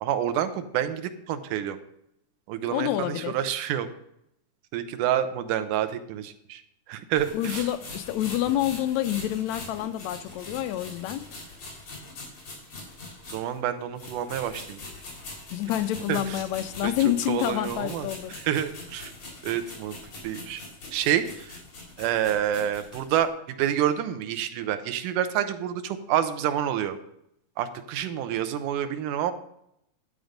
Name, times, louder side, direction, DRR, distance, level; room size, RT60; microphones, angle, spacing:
voice 1, 0.0-1.8 2.5-3.9 4.7-6.6 6.9-7.7 13.3-14.8 16.1-16.4 16.8-16.9 17.3-19.1 19.4-20.0 20.2-20.6 20.9-21.6 22.0-27.0 27.6-29.3, right 10 dB, 85° right, 9 dB, 2.4 m, -28 dB
voice 2, 2.7-3.3 7.3-11.2 15.5-18.4, left 12 dB, 80° left, 11 dB, 1.7 m, -28 dB
sound 1, 7.1-13.6 14.0-23.2, left 2 dB, 55° left, 4.5 m, -42 dB
11.0 x 8.1 x 5.1 m, 0.77 s
omnidirectional pair, 3.6 m